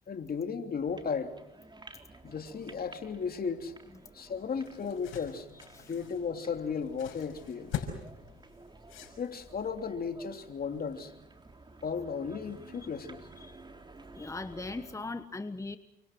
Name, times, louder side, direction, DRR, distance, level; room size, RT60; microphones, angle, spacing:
voice 1, 0.1-1.3 2.2-3.7 4.1-5.5 5.7-7.8 9.2-11.1 11.8-13.2, left 6 dB, 50° left, 3.1 m, -35 dB
sound 1, 0.9-15.0, right 2 dB, 20° right, 3.8 m, -53 dB
sound 2, 4.3-9.7, left 9 dB, 85° left, 5.9 m, -43 dB
voice 2, 14.1-15.8, left 3 dB, 15° left, 1.3 m, -39 dB
30.0 x 26.0 x 6.1 m
cardioid pair, 90°, 20 cm